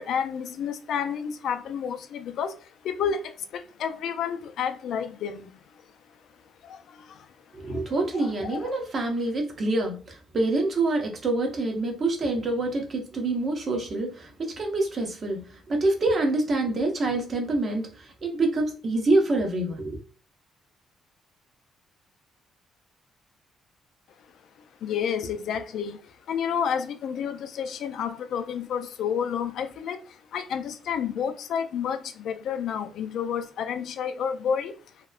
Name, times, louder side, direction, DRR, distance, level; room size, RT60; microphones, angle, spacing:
voice 1, 0.0-5.5 6.6-7.3 7.7-7.8 8.1-8.6 24.8-26.0 26.3-34.8, left 7 dB, 75° left, 0.4 m, -30 dB
voice 2, 7.5-20.0, right 2 dB, 45° right, 0.9 m, -26 dB
2.8 x 2.0 x 2.3 m
cardioid pair, 90°, 0 cm